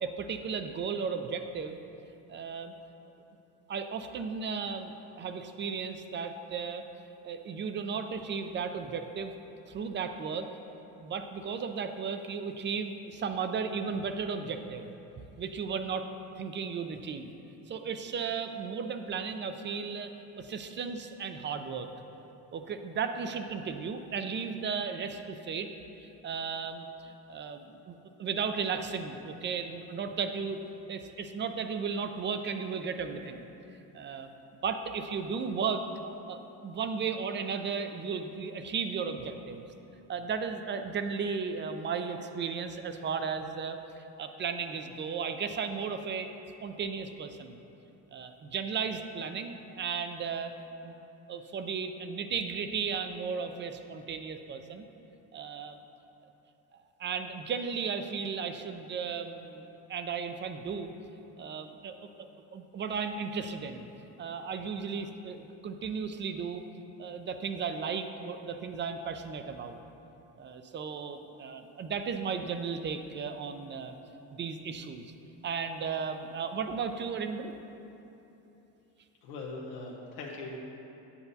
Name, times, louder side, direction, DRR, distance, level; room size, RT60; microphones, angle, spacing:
voice 1, 0.0-1.8 2.3-2.7 3.7-6.8 7.2-9.3 9.7-10.5 11.0-14.9 15.4-16.1 16.4-17.3 17.7-20.1 20.4-21.9 22.5-25.7 26.0-30.6 30.9-33.5 33.9-34.3 34.6-35.9 36.3-39.7 40.1-46.3 46.6-47.6 48.1-50.5 50.8-50.9 51.3-54.9 55.3-55.8 57.0-60.9 61.4-62.0 62.5-63.9 64.2-66.6 67.0-69.8 70.4-74.0 74.3-75.1 75.4-77.5, right 6 dB, 30° right, 8 dB, 0.4 m, -35 dB
voice 2, 79.2-80.6, left 3 dB, 90° left, -2 dB, 0.8 m, -40 dB
8.3 x 7.6 x 2.7 m, 2.9 s
supercardioid pair, 95°, 40 cm